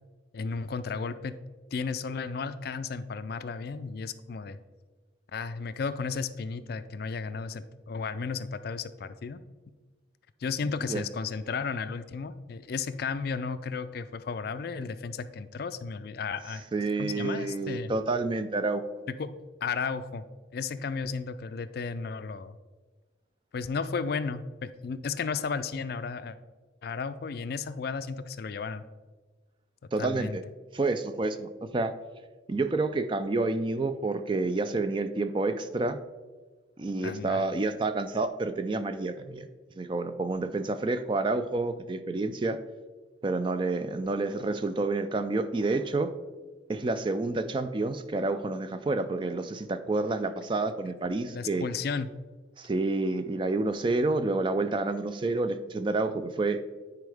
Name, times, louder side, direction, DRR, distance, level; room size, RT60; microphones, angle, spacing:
voice 1, 0.3-1.3 1.7-4.6 5.3-9.4 10.4-16.7 17.0-17.9 19.2-19.3 19.6-20.2 20.5-22.6 23.5-26.4 26.8-28.8 30.0-30.4 37.0-37.4 51.3-52.1, left 5 dB, 50° left, 13 dB, 0.3 m, -34 dB
voice 2, 16.7-18.8 29.9-30.4 30.7-31.9 32.5-36.0 36.8-39.5 39.8-42.6 43.2-46.1 46.7-51.6 52.6-56.6, right 3 dB, 25° right, 10 dB, 0.3 m, -29 dB
9.5 x 4.6 x 3.4 m, 1.3 s
head